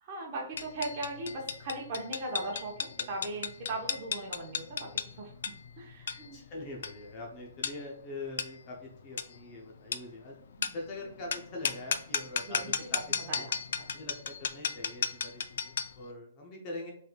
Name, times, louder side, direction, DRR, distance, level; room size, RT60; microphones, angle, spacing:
voice 1, 0.0-4.9 5.2-5.3 5.8-6.4 10.6-10.7 12.5-13.6, right 2 dB, 30° right, -1 dB, 0.9 m, -38 dB
sound 1, 0.6-16.0, left 6 dB, 60° left, 0.3 m, -36 dB
voice 2, 6.3-10.4 10.7-13.0 13.3-13.5 13.9-16.9, left 2 dB, 20° left, -1 dB, 0.6 m, -43 dB
4.4 x 3.3 x 2.3 m, 0.64 s
hypercardioid pair, 175°, 0 cm